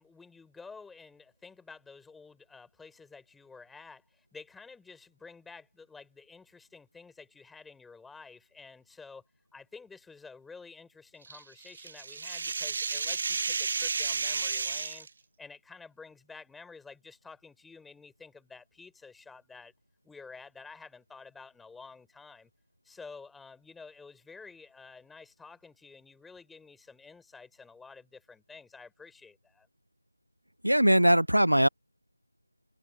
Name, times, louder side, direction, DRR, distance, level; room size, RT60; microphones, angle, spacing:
voice 1, 0.0-9.2 9.5-15.1 15.4-19.7 20.0-22.5 22.8-29.7, left 4 dB, ahead, 4.9 m, -51 dB
sound 1, 11.3-15.1, right 5 dB, 30° right, 0.6 m, -32 dB
voice 2, 30.6-31.7, equal, 90° right, 0.4 m, -21 dB
figure-of-eight pair, 165°, 0 cm